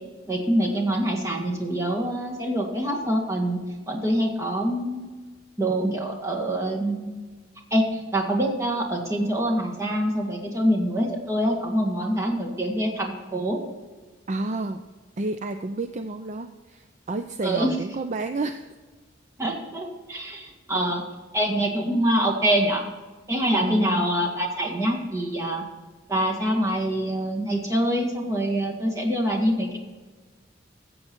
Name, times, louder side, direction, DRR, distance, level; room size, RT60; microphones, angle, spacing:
voice 1, 0.3-3.6 3.9-5.1 5.6-7.2 7.7-13.6 17.4-17.8 19.4-21.0 21.3-22.9 23.3-25.6 26.1-29.8, equal, 15° right, 0 dB, 1.9 m, -25 dB
voice 2, 14.3-14.8 15.2-18.7 23.6-24.1, right 2 dB, 40° right, 8 dB, 0.5 m, -30 dB
14.5 x 7.8 x 4.5 m, 1.3 s
head